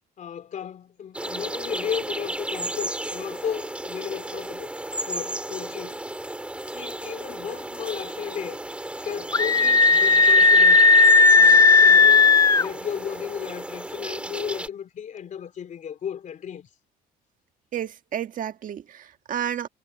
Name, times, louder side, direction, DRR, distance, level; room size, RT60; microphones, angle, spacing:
voice 1, 0.2-4.7 5.0-6.0 6.7-8.6 9.0-10.8 11.3-12.3 12.6-16.7, left 8 dB, 50° left, 3.2 m, -34 dB
sound 1, 1.1-14.7, right 1 dB, 5° right, 3.3 m, -34 dB
Screaming, 9.3-12.7, left 4 dB, 20° left, 0.5 m, -15 dB
voice 2, 17.7-19.7, right 9 dB, 50° right, 1.8 m, -31 dB
cardioid pair, 110°, 17 cm